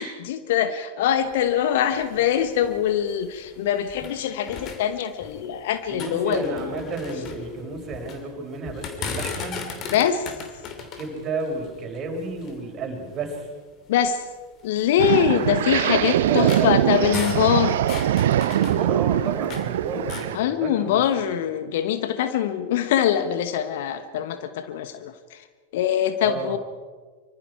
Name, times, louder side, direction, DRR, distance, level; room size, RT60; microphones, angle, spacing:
voice 1, 0.0-6.6 9.9-10.3 13.9-14.2 14.6-17.8 20.3-25.4 25.7-26.6, left 9 dB, 55° left, 11 dB, 1.2 m, -23 dB
sound 1, 1.2-4.2 4.5-5.5 5.8-8.2 8.6-12.7 13.3-13.4 13.9-14.0 14.8-19.7 20.0-20.4, left 5 dB, 35° left, 2.9 m, -37 dB
voice 2, 5.9-9.7 10.8-13.5 15.3-15.6 16.2-16.8 18.5-20.9 21.3-21.4 26.2-26.5, right 3 dB, 30° right, 1 dB, 5.6 m, -32 dB
sound 2, 15.0-20.4, right 12 dB, 60° right, 0.7 m, -22 dB
25.0 x 25.0 x 4.7 m, 1.5 s
figure-of-eight pair, 90°, 0 cm